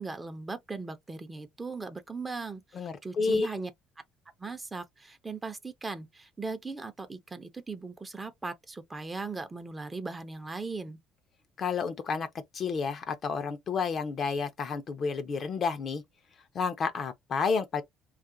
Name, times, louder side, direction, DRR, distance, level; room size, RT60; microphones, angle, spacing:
voice 1, 0.0-3.7 4.4-11.0, right 3 dB, 20° right, 0.6 m, -38 dB
voice 2, 2.7-3.5 11.6-12.3 12.5-16.0 16.5-17.8, left 5 dB, 45° left, 0.6 m, -30 dB
2.9 x 2.4 x 2.6 m
supercardioid pair, 85°, 0 cm